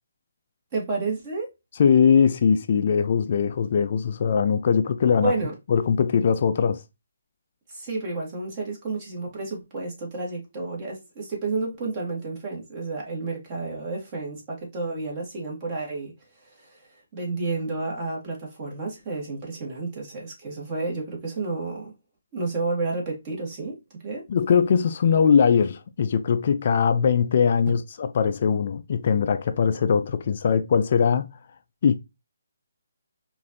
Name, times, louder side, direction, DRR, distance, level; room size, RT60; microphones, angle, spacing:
voice 1, 0.7-1.5 5.2-5.5 7.7-16.1 16.4-16.8 17.1-21.9 22.3-23.8 24.0-24.2, right 3 dB, 30° right, 1.7 m, -31 dB
voice 2, 1.8-5.3 5.7-6.8 24.3-31.3 31.8-32.0, left 6 dB, 50° left, 0.3 m, -21 dB
4.9 x 2.6 x 2.7 m
figure-of-eight pair, 145°, 0 cm